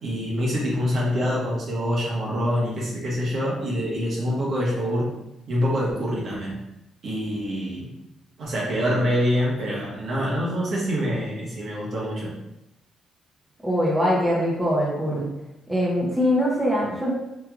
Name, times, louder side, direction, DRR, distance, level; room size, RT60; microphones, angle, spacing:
voice 1, 0.0-5.1 5.5-6.6 7.0-7.9 8.4-12.3, equal, 60° right, -5 dB, 1.2 m, -25 dB
voice 2, 13.6-15.3 15.7-17.1, equal, 10° right, -5 dB, 0.9 m, -22 dB
3.3 x 3.1 x 2.4 m, 0.90 s
cardioid pair, 90°, 0 cm